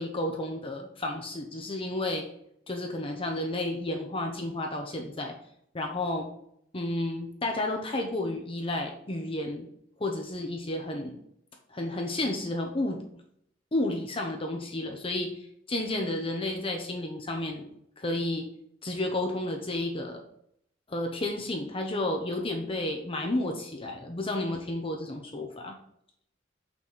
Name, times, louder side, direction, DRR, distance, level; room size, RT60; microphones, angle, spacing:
voice 1, 0.0-2.3 2.7-5.3 5.7-6.3 6.7-9.7 10.0-11.2 11.7-13.0 13.7-15.4 15.7-17.7 18.0-18.5 18.8-20.2 20.9-25.8, left 1 dB, 30° left, 3 dB, 0.8 m, -31 dB
6.2 x 6.0 x 4.0 m, 0.71 s
head